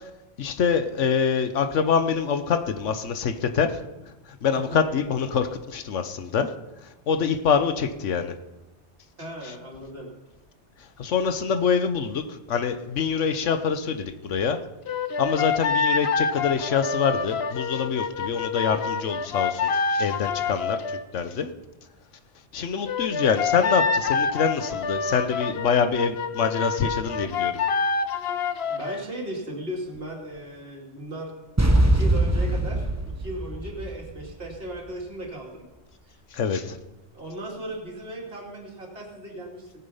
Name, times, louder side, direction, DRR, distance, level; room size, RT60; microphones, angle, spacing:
voice 1, 0.4-3.8 4.4-6.5 7.1-8.3 11.0-14.6 15.2-20.8 21.1-21.5 22.5-27.6 36.3-36.8, left 6 dB, 90° left, 10 dB, 1.3 m, -25 dB
voice 2, 9.2-10.1 28.7-31.3 31.8-35.7 36.0-36.1 37.1-39.8, right 1 dB, 55° right, -1 dB, 2.9 m, -36 dB
sound 1, 14.9-21.1 22.9-29.1, left 5 dB, 65° left, 1.0 m, -27 dB
sound 2, 31.6-34.5, right 1 dB, 15° right, 1.0 m, -22 dB
18.0 x 8.7 x 5.6 m, 1.1 s
omnidirectional pair, 1.2 m